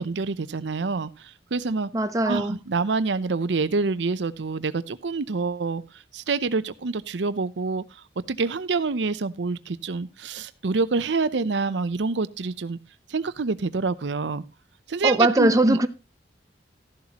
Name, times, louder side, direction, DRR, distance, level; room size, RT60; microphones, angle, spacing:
voice 1, 0.0-1.9 2.2-5.8 6.1-7.8 8.3-12.8 13.1-14.4 14.9-15.9, right 4 dB, 85° right, 0.6 m, -27 dB
voice 2, 1.9-2.6 15.0-15.9, right 1 dB, 20° right, 0.7 m, -20 dB
13.5 x 11.5 x 2.9 m
head